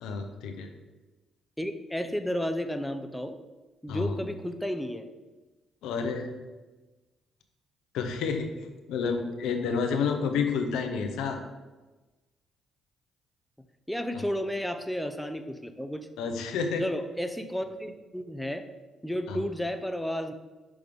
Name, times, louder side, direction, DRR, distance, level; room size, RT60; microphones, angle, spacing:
voice 1, 0.0-0.7 3.9-4.2 5.8-6.3 7.9-8.5 8.9-11.4 14.1-14.2 16.2-16.9 19.3-19.4, left 5 dB, 85° left, 5 dB, 0.7 m, -29 dB
voice 2, 1.6-3.4 3.8-5.1 13.9-16.1 16.8-18.6 19.0-20.3, equal, 5° left, 7 dB, 0.6 m, -32 dB
6.0 x 3.5 x 5.1 m, 1.2 s
supercardioid pair, 65°, 0 cm